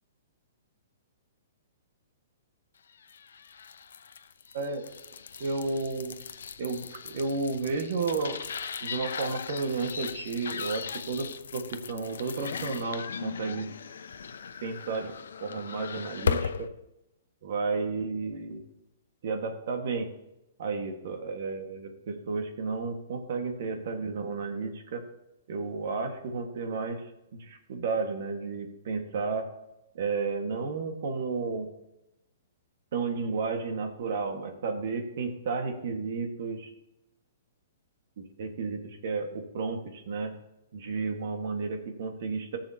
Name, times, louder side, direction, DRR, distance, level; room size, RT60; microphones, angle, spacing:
sound 1, 3.0-16.7, left 6 dB, 90° left, 0.6 m, -37 dB
voice 1, 5.4-6.2 6.6-8.4 8.8-13.7 14.6-15.1 15.4-16.7 17.4-18.6 19.2-20.1 20.6-25.0 25.5-27.0 27.3-29.5 29.9-31.7 32.9-36.7 38.2-40.3 40.7-42.6, right 4 dB, 55° right, 5 dB, 1.5 m, -32 dB
14.5 x 7.2 x 2.8 m, 0.89 s
hypercardioid pair, 165°, 0 cm